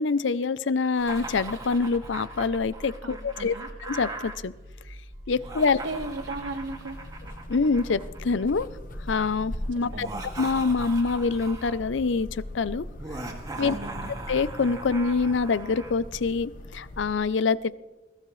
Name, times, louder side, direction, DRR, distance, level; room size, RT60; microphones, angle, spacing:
voice 1, 0.0-3.5 3.9-4.5 5.3-5.8 7.5-8.7 9.1-10.1 10.4-12.9 13.6-13.7 14.3-17.8, left 4 dB, 70° left, 18 dB, 0.5 m, -25 dB
Laughter, 1.0-4.4 5.3-8.6 9.9-11.9 13.0-15.9, right 2 dB, 20° right, 2.2 m, -40 dB
sound 1, 1.0-14.9, equal, 50° right, 2.0 m, -45 dB
voice 2, 3.0-3.7 5.7-7.0 9.9-10.2 13.6-14.1, right 2 dB, 85° right, 6 dB, 1.6 m, -36 dB
sound 2, 5.8-17.1, left 1 dB, 45° left, 1.1 m, -41 dB
21.5 x 15.0 x 3.2 m, 1.1 s
head